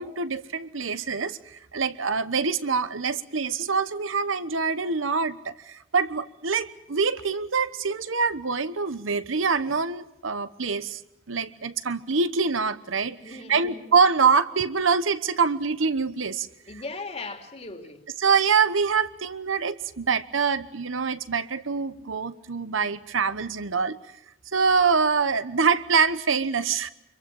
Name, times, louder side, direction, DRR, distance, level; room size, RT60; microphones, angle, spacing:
voice 1, 0.0-11.0 11.3-16.5 18.2-24.0 24.5-26.9, right 5 dB, 85° right, 1.1 m, -25 dB
voice 2, 13.2-13.9 16.7-18.0, left 3 dB, 30° left, 2.8 m, -38 dB
25.5 x 23.0 x 7.2 m
head